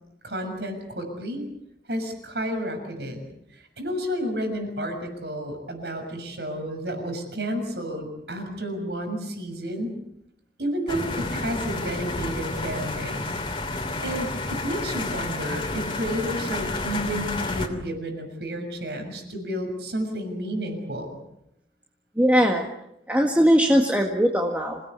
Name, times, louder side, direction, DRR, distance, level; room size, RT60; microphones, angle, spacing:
voice 1, 0.2-1.5 1.9-3.2 3.5-9.9 10.6-13.4 14.0-21.1, equal, 70° right, 5 dB, 6.5 m, -31 dB
sound 1, 10.9-17.7, left 2 dB, 30° left, 2.8 m, -30 dB
voice 2, 22.2-22.7 23.1-24.8, equal, 10° right, 1 dB, 1.8 m, -20 dB
27.5 x 18.0 x 8.3 m, 0.80 s
head